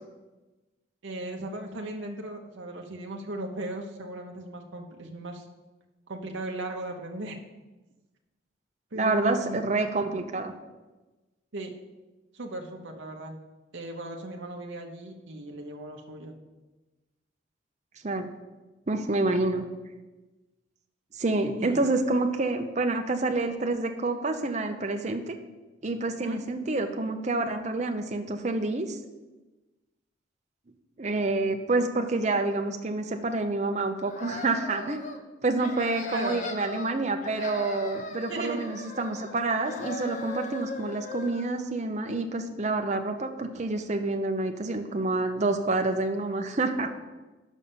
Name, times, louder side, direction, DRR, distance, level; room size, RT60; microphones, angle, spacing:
voice 1, 1.0-5.5 6.1-7.4 8.9-9.6 11.5-11.7 12.3-13.3 13.7-16.3 21.6-21.8 26.2-26.4 36.1-36.4 38.3-38.6, right 1 dB, 70° right, 1 dB, 0.8 m, -37 dB
voice 2, 8.9-10.5 18.0-18.3 18.9-19.6 21.2-25.4 25.8-29.0 31.0-35.0 35.4-46.9, right 2 dB, 35° right, 5 dB, 0.7 m, -28 dB
sound 1, 34.0-35.2 35.6-36.9 37.2-39.4 39.6-41.6, left 2 dB, 40° left, 0.7 m, -38 dB
6.3 x 5.4 x 7.1 m, 1.2 s
head